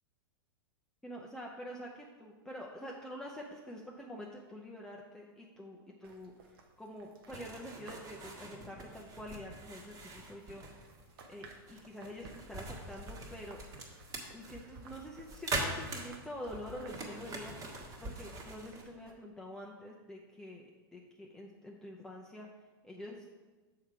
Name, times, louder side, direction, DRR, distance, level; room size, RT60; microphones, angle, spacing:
voice 1, 1.0-10.6 11.3-13.6 14.3-17.5 18.0-22.5 22.8-23.3, equal, 5° left, -2 dB, 0.6 m, -46 dB
sound 1, 6.0-19.1, right 3 dB, 70° right, 1.0 m, -58 dB
sound 2, 7.3-18.8, right 2 dB, 30° right, 1.4 m, -43 dB
6.4 x 4.8 x 5.8 m, 1.3 s
hypercardioid pair, 120°, 13 cm